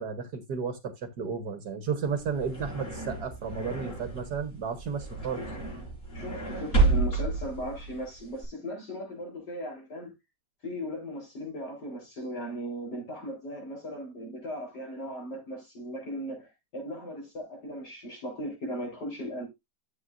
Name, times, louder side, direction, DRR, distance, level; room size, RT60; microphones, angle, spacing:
voice 1, 0.0-5.4, right 6 dB, 65° right, 1.6 m, -33 dB
sound 1, 2.1-8.5, right 3 dB, 40° left, 6.0 m, -30 dB
voice 2, 6.1-10.1 10.6-19.5, equal, 65° left, 4.4 m, -37 dB
11.5 x 7.7 x 2.5 m
omnidirectional pair, 1.9 m